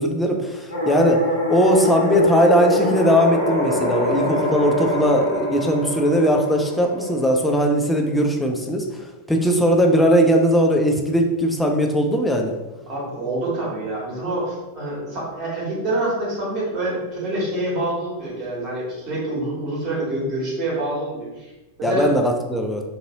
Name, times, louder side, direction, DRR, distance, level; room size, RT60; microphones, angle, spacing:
voice 1, 0.0-12.5 21.8-22.8, equal, 5° left, 2 dB, 0.4 m, -19 dB
sound 1, 0.7-7.7, left 1 dB, 65° left, 0.8 m, -25 dB
voice 2, 12.9-21.5 21.8-22.1, right 1 dB, 35° right, -5 dB, 1.3 m, -26 dB
2.8 x 2.6 x 2.7 m, 1.1 s
figure-of-eight pair, 90°, 0 cm